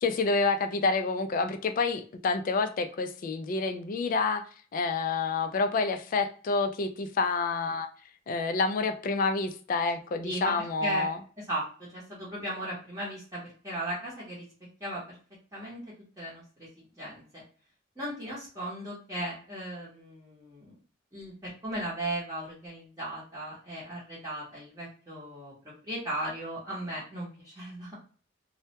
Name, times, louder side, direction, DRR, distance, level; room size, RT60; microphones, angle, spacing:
voice 1, 0.0-4.4 4.7-7.9 8.3-11.2, left 4 dB, 45° left, 8 dB, 0.3 m, -28 dB
voice 2, 10.2-10.5 10.8-11.1 11.5-14.4 14.8-15.2 15.5-15.8 16.2-17.4 18.0-20.7 21.1-27.9, right 1 dB, 15° right, -8 dB, 0.8 m, -37 dB
2.2 x 2.1 x 2.7 m, 0.41 s
head